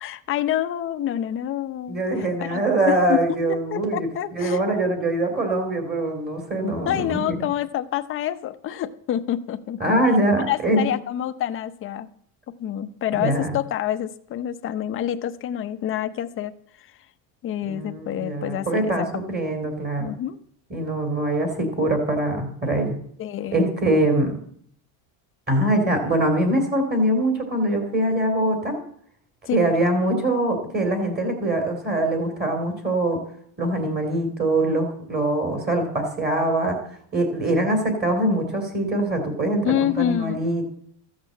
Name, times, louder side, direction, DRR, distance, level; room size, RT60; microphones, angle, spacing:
voice 1, 0.0-3.2 3.7-4.6 6.9-9.8 10.5-12.1 12.6-16.5 16.8-16.9 17.4-19.1 20.0-20.4 23.2-23.6 29.5-29.7 39.6-40.4, left 11 dB, 25° left, 9 dB, 0.8 m, -27 dB
voice 2, 1.9-7.5 9.8-10.9 13.1-13.5 17.6-20.1 20.7-22.9 23.5-24.3 25.5-28.9 29.5-33.2 33.6-36.8 37.1-40.6, right 1 dB, 20° right, 4 dB, 3.0 m, -23 dB
14.5 x 8.6 x 7.7 m, 0.62 s
cardioid pair, 160°, 48 cm